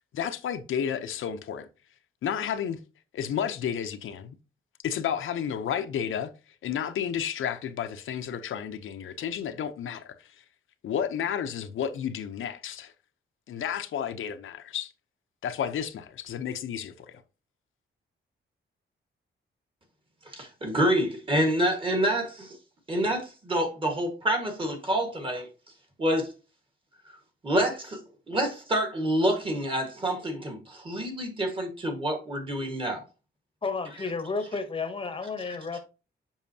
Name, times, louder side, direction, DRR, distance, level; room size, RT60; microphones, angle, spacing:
voice 1, 0.1-1.7 2.2-2.8 3.1-4.3 4.8-6.3 6.6-10.3 10.8-12.9 13.5-14.9 15.4-17.2, left 8 dB, 80° left, 0.7 m, -31 dB
voice 2, 20.3-22.6 22.9-25.5 26.0-26.3 27.4-28.0 28.3-33.0, right 1 dB, 25° right, 1.5 m, -27 dB
voice 3, 33.6-35.8, left 4 dB, 25° left, 0.9 m, -32 dB
7.2 x 5.6 x 2.8 m
wide cardioid pair, 175°, 21 cm